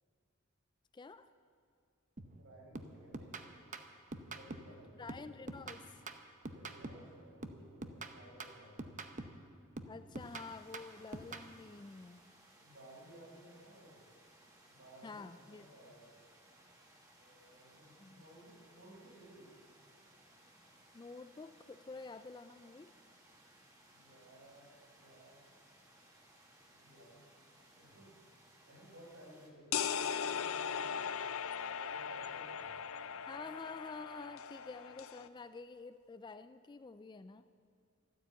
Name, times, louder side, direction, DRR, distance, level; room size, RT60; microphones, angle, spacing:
voice 1, 0.9-1.3 4.7-6.0 9.9-12.2 15.0-15.7 18.0-18.2 20.9-22.9 33.3-37.5, left 4 dB, 20° left, 12 dB, 0.3 m, -49 dB
sound 1, 2.2-2.4 2.8-4.8 5.1-7.1 7.4-9.5 9.8-11.5, right 2 dB, 35° right, 0.8 m, -46 dB
voice 2, 2.4-3.5 4.1-5.0 6.4-8.8 12.6-14.0 14.7-15.2 15.5-16.0 17.2-19.5 23.9-25.4 26.7-27.2 27.7-28.1 28.6-31.0 31.6-32.7 33.3-33.4, right 1 dB, 70° right, -2 dB, 5.1 m, -58 dB
sound 2, 10.2-29.5, right 1 dB, 15° right, 2.0 m, -63 dB
sound 3, 29.7-35.3, left 7 dB, 90° left, 0.6 m, -39 dB
14.5 x 12.0 x 8.1 m, 2.3 s
head